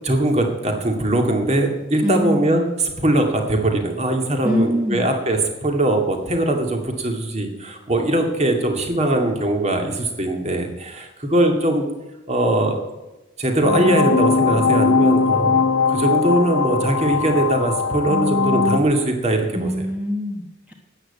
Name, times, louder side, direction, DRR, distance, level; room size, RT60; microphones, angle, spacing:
voice 1, 0.0-11.9 12.3-12.8 13.4-15.6 15.9-19.7, right 1 dB, 35° right, 3 dB, 2.2 m, -21 dB
voice 2, 2.0-2.5 4.4-5.1 19.5-20.7, equal, 5° right, 0 dB, 1.2 m, -24 dB
sound 1, 13.6-18.8, left 4 dB, 80° left, 1.2 m, -19 dB
13.0 x 8.9 x 8.4 m, 1.0 s
head